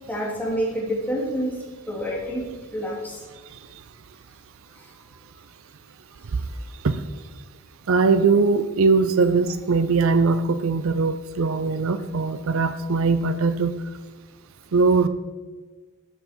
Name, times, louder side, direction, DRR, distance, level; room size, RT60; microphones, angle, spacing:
voice 1, 0.1-1.6 1.9-2.4 2.7-3.2, equal, 10° left, -3 dB, 2.6 m, -27 dB
voice 2, 7.9-13.8 14.7-15.1, right 4 dB, 65° right, 11 dB, 0.5 m, -20 dB
12.5 x 7.7 x 4.4 m, 1.4 s
head